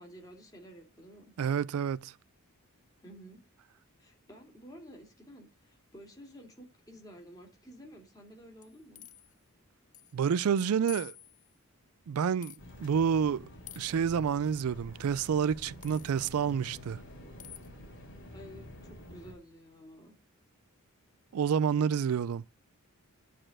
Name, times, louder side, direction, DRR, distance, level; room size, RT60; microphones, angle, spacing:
voice 1, 0.0-1.3 3.0-3.4 4.0-9.1 18.3-20.1, equal, 15° left, 2.8 m, -52 dB
voice 2, 1.4-2.1 10.1-11.1 12.1-12.5 12.8-13.5 13.8-17.0 21.3-22.4, right 7 dB, 80° right, 0.4 m, -28 dB
sound 1, 8.6-9.3 9.9-10.1 10.4-10.5 10.9-11.5 12.4-12.6 13.7-14.0 15.8-16.2 17.4-17.7, left 12 dB, 35° left, 0.5 m, -48 dB
sound 2, 12.6-19.3, left 1 dB, 55° left, 3.6 m, -49 dB
10.0 x 4.4 x 6.0 m
head